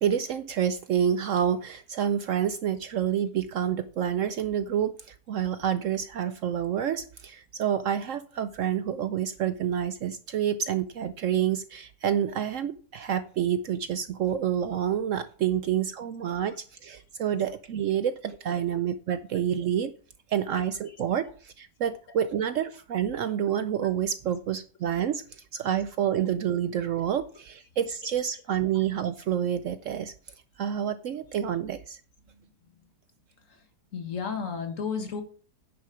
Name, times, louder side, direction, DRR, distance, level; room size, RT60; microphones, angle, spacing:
voice 1, 0.0-19.9 20.3-30.1 30.6-32.0, right 9 dB, 65° right, 12 dB, 0.8 m, -28 dB
voice 2, 33.9-35.2, left 6 dB, 55° left, 6 dB, 1.8 m, -32 dB
10.0 x 6.4 x 5.0 m, 0.40 s
omnidirectional pair, 1.7 m